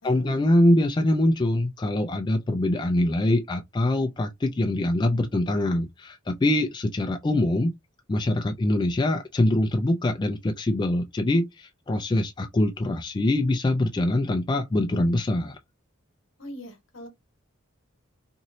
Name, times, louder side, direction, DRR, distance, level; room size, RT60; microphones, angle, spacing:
voice 1, 0.0-7.7 8.1-15.6, left 1 dB, 20° left, 0.3 m, -24 dB
voice 2, 16.4-17.1, equal, 70° left, 1.1 m, -41 dB
3.0 x 2.7 x 2.6 m
head